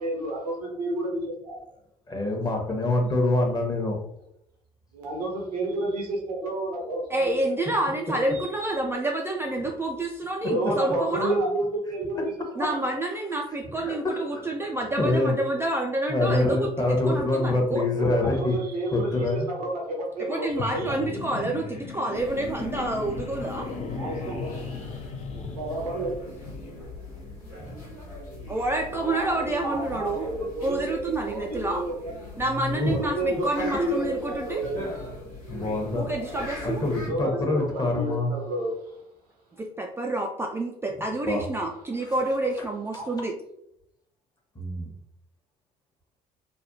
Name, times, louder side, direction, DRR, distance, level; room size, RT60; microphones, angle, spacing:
voice 1, 0.0-1.6 4.9-7.4 8.5-8.7 10.4-12.3 12.6-12.7 17.9-21.2 24.0-24.5 25.5-26.1 28.9-31.0 31.3-31.8 32.9-34.9 37.0-38.7 43.0-43.1, right 1 dB, 85° right, 0 dB, 0.7 m, -30 dB
voice 2, 2.1-4.0 13.9-14.5 15.0-15.3 16.1-18.6 18.9-19.5 21.4-21.5 25.3-25.6 27.6-27.8 32.6-33.0 35.5-38.3 41.3-41.4 44.5-44.9, left 2 dB, 20° left, 1 dB, 0.9 m, -26 dB
voice 3, 7.1-11.3 12.6-17.9 20.2-23.7 28.5-30.3 30.6-31.8 32.4-34.6 35.9-36.9 39.6-43.3, right 2 dB, 15° right, 1 dB, 0.3 m, -28 dB
sound 1, 20.5-26.7, left 4 dB, 35° left, 0.5 m, -37 dB
Waiting in a cue, 22.1-37.1, left 1 dB, 85° left, 1.0 m, -40 dB
3.3 x 2.1 x 2.7 m, 0.78 s
figure-of-eight pair, 55°, 19 cm